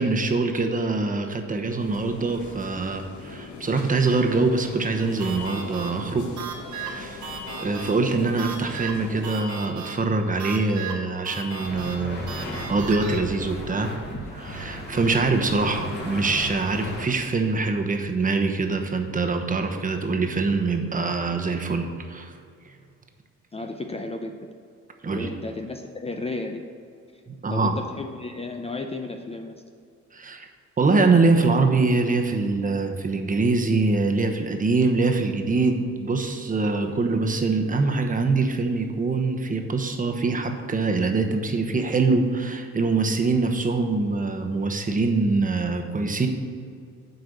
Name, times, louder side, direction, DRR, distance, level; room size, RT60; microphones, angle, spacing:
voice 1, 0.0-6.5 6.8-7.2 7.6-12.2 12.7-14.0 14.3-22.4 25.0-25.3 27.3-27.8 30.1-30.5 30.8-46.3, right 3 dB, 25° right, 4 dB, 1.1 m, -24 dB
sound 1, 1.8-9.3, left 4 dB, 80° left, 1.2 m, -41 dB
sound 2, 5.2-13.2, right 4 dB, 75° right, 1.3 m, -37 dB
sound 3, 11.5-17.0, equal, 35° left, 2.0 m, -35 dB
voice 2, 23.5-24.4 25.1-26.7 27.5-29.6 36.9-37.0, left 2 dB, 20° left, 4 dB, 0.6 m, -33 dB
8.0 x 4.7 x 6.8 m, 2.3 s
cardioid pair, 90°, 30 cm